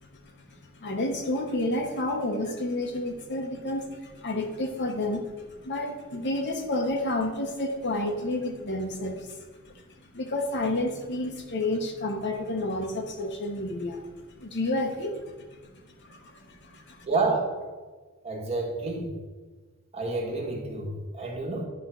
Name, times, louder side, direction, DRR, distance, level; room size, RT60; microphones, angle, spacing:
voice 1, 0.0-5.2 5.6-9.4 9.7-9.8 10.1-14.0 14.4-15.3 16.0-17.1, left 1 dB, 50° left, 3 dB, 1.0 m, -30 dB
voice 2, 17.0-17.5 18.2-19.2 19.9-21.6, right 3 dB, 30° right, -1 dB, 1.5 m, -29 dB
10.5 x 3.7 x 5.7 m, 1.4 s
head